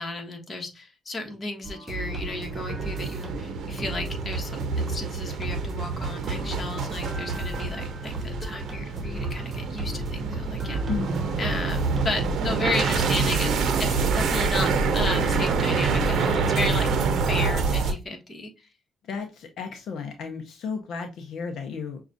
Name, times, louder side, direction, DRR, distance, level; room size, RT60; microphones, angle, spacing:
voice 1, 0.0-10.8 11.4-16.9 17.3-18.5, left 2 dB, 35° left, 1.2 m, -33 dB
sound 1, 1.6-17.7, right 2 dB, 30° right, 1.0 m, -35 dB
sound 2, 1.9-17.9, right 5 dB, 70° right, 0.6 m, -27 dB
voice 2, 10.9-11.2 19.0-22.0, left 5 dB, 70° left, 0.6 m, -33 dB
5.9 x 2.3 x 2.6 m
cardioid pair, 90°, 0 cm